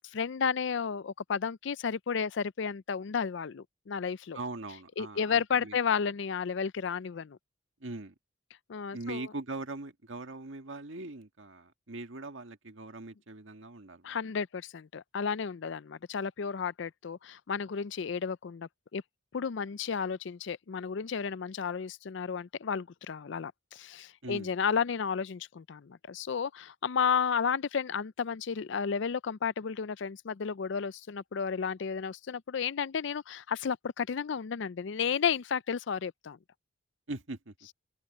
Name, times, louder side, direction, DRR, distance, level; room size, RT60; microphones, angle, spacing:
voice 1, 0.1-4.4 5.0-7.4 8.7-9.2 14.0-19.0 19.3-36.4, left 6 dB, 60° left, 0.4 m, -32 dB
voice 2, 4.3-5.8 7.8-8.1 8.9-14.2 24.2-24.5 37.1-37.5, right 2 dB, 70° right, 1.8 m, -41 dB
open air
head